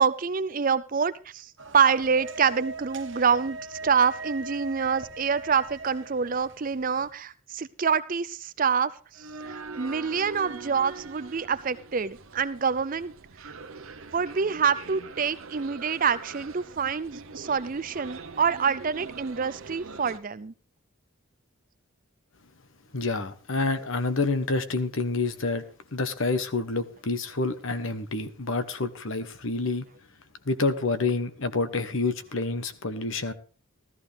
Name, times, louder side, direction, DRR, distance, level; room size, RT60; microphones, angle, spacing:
voice 1, 0.0-8.9 9.5-13.1 14.1-20.5, right 6 dB, 40° right, 15 dB, 0.5 m, -26 dB
sound 1, 1.6-7.1, right 3 dB, 60° right, 1.1 m, -41 dB
sound 2, 9.1-20.2, right 4 dB, 75° right, 1.0 m, -43 dB
voice 2, 22.9-25.6 25.9-29.9 30.5-33.3, left 3 dB, 65° left, 11 dB, 1.1 m, -28 dB
14.0 x 13.5 x 3.4 m, 0.37 s
head